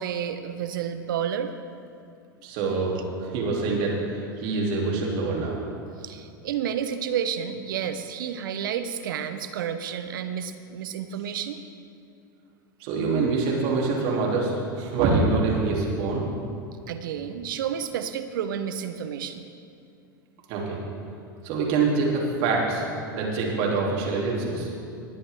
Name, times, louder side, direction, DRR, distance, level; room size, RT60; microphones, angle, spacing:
voice 1, 0.0-1.5 6.0-11.6 16.9-19.4, right 8 dB, 70° right, 10 dB, 0.8 m, -30 dB
voice 2, 2.4-2.9 3.2-3.9 4.4-5.6 12.8-16.3 20.5-20.8 21.4-22.8 23.1-24.7, right 4 dB, 55° right, -2 dB, 3.1 m, -25 dB
19.5 x 8.7 x 3.7 m, 2.4 s
hypercardioid pair, 90°, 11 cm